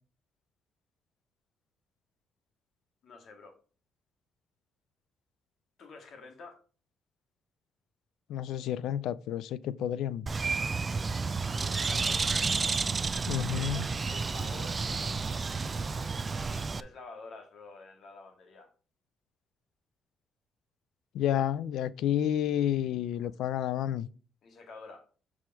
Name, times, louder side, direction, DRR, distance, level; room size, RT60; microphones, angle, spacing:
voice 1, 3.0-3.6 5.8-6.6 11.5-12.3 13.6-14.9 16.5-18.7 24.4-25.1, left 3 dB, 65° left, 1.8 m, -49 dB
voice 2, 8.3-10.3 13.3-13.9 21.1-24.1, left 10 dB, 85° left, 0.4 m, -30 dB
Bird, 10.3-16.8, right 4 dB, 30° right, 0.4 m, -31 dB
7.1 x 4.9 x 4.5 m
cardioid pair, 90°, 0 cm